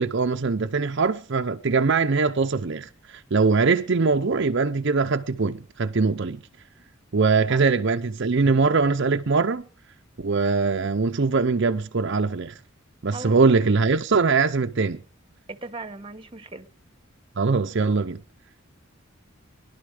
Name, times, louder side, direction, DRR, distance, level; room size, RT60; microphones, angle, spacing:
voice 1, 0.0-6.4 7.1-9.7 10.2-12.5 13.0-15.0 17.4-18.2, right 4 dB, 60° right, 0.7 m, -22 dB
voice 2, 13.1-13.6 15.5-16.7, right 2 dB, 25° right, 1.2 m, -38 dB
22.0 x 11.5 x 5.0 m
head